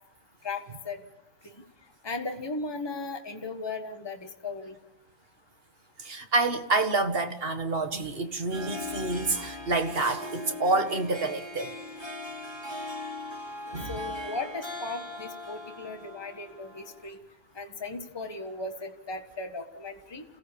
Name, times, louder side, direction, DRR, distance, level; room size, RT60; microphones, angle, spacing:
voice 1, 0.4-1.0 2.0-4.8 13.9-17.2 17.5-20.2, left 3 dB, 20° left, 5 dB, 1.5 m, -37 dB
voice 2, 6.0-11.7 13.7-13.9, right 3 dB, 45° right, 8 dB, 1.7 m, -28 dB
Harp, 8.3-17.1, left 2 dB, 20° right, 2.7 m, -39 dB
28.0 x 17.0 x 6.9 m, 0.89 s
omnidirectional pair, 1.4 m